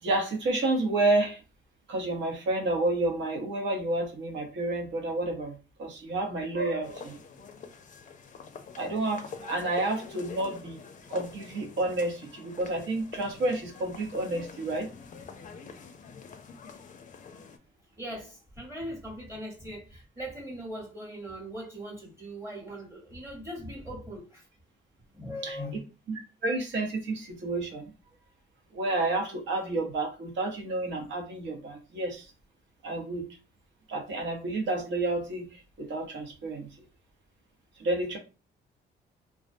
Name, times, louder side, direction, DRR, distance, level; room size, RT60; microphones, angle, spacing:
voice 1, 0.0-1.4 1.9-7.2 8.8-10.8 11.1-14.9 25.4-25.6 26.1-27.9 28.7-32.3 32.8-33.4 33.9-36.7 37.8-38.2, right 2 dB, 70° right, 0.8 m, -30 dB
sound 1, 6.8-17.6, left 5 dB, 40° left, 0.4 m, -46 dB
voice 2, 18.0-24.5 25.1-25.8, equal, 15° right, 0.9 m, -40 dB
2.3 x 2.1 x 2.5 m
cardioid pair, 90°, 20 cm